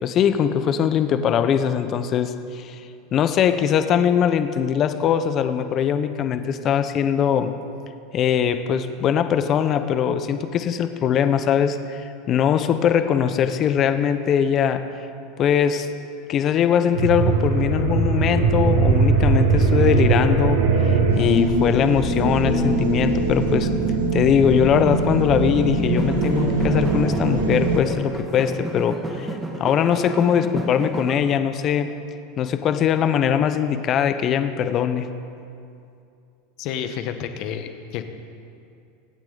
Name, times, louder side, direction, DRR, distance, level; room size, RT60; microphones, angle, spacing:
voice 1, 0.0-2.8 3.1-7.5 8.1-12.0 12.3-14.9 15.4-15.9 16.3-23.7 24.1-29.3 29.6-31.9 32.4-35.1, left 8 dB, 40° left, 10 dB, 0.8 m, -21 dB
sound 1, 16.9-27.8, right 3 dB, 90° right, 1.8 m, -21 dB
sound 2, 25.9-31.1, right 1 dB, 10° right, 1.7 m, -31 dB
voice 2, 36.6-38.0, left 8 dB, 55° left, 8 dB, 1.2 m, -30 dB
24.0 x 8.8 x 4.0 m, 2.5 s
supercardioid pair, 120°, 0 cm